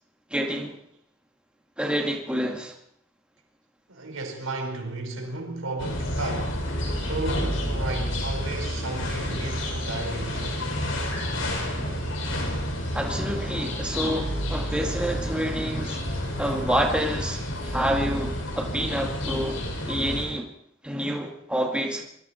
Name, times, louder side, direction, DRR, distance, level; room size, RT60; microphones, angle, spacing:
voice 1, 0.3-0.8 1.8-2.7 12.9-16.0 16.4-20.5 20.8-22.1, equal, 5° right, 2.3 m, -28 dB
voice 2, 3.9-10.7 17.7-17.8, right 2 dB, 90° right, 5.4 m, -34 dB
sound 1, 5.8-20.3, equal, 75° left, 6.7 m, -30 dB
26.0 x 23.0 x 4.6 m
head